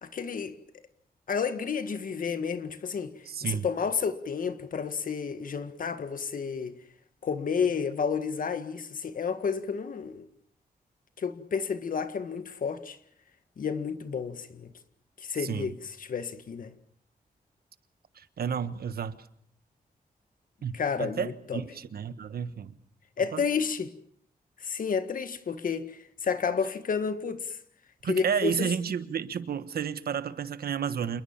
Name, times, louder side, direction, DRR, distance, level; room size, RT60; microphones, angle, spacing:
voice 1, 0.0-0.6 1.3-6.7 7.2-10.3 11.2-13.0 13.6-14.7 15.2-16.7 20.7-21.6 23.2-23.9 24.6-27.6 28.0-28.7, left 6 dB, 65° left, 1.8 m, -31 dB
voice 2, 3.3-3.7 15.4-15.7 18.1-19.2 20.6-22.8 23.3-23.4 28.0-31.2, right 7 dB, 85° right, 1.4 m, -31 dB
28.0 x 22.0 x 7.4 m
wide cardioid pair, 150°, 15 cm